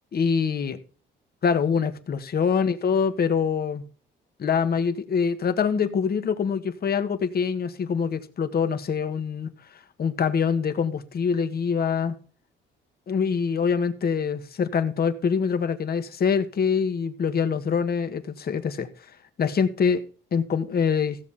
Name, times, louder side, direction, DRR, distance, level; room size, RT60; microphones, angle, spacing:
voice 1, 0.1-0.8 1.4-3.8 4.4-9.5 10.0-12.1 13.1-18.9 19.4-20.0 20.3-21.2, left 6 dB, 50° left, 9 dB, 1.6 m, -24 dB
16.0 x 7.2 x 4.2 m, 0.39 s
cardioid pair, 90°, 20 cm